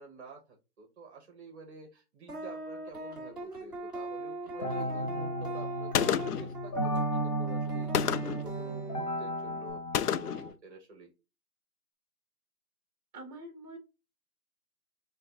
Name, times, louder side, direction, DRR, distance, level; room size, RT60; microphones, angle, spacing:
voice 1, 0.0-11.1, right 3 dB, 45° right, 2 dB, 1.0 m, -49 dB
sound 1, 2.3-9.7, right 2 dB, ahead, 1.4 m, -41 dB
sound 2, 4.6-10.5, right 1 dB, 25° left, 0.6 m, -34 dB
Gunshot gunfire, 5.9-6.5 7.9-8.5 9.9-10.5, left 9 dB, 75° left, 0.6 m, -29 dB
voice 2, 13.1-13.8, right 2 dB, 25° right, 3 dB, 1.2 m, -45 dB
3.8 x 2.3 x 3.8 m, 0.28 s
hypercardioid pair, 150°, 46 cm